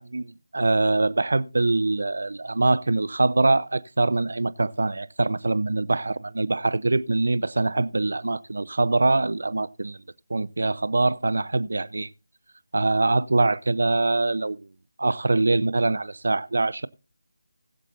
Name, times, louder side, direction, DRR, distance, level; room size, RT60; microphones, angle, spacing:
voice 1, 0.0-10.0 10.3-12.1 12.7-14.7 15.0-16.9, right 2 dB, 65° right, 0.6 m, -23 dB
20.5 x 7.3 x 2.7 m
figure-of-eight pair, 160°, 0 cm